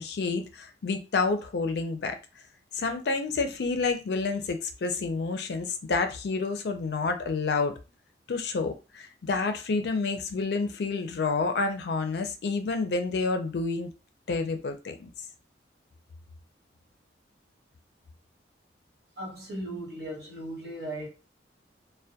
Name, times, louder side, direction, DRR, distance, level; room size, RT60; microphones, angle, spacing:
voice 1, 0.0-2.2 2.7-7.7 8.3-13.9 14.3-15.1, left 4 dB, 65° left, 0.4 m, -29 dB
voice 2, 19.2-21.1, right 1 dB, 60° right, 1.0 m, -37 dB
2.2 x 2.1 x 2.7 m
head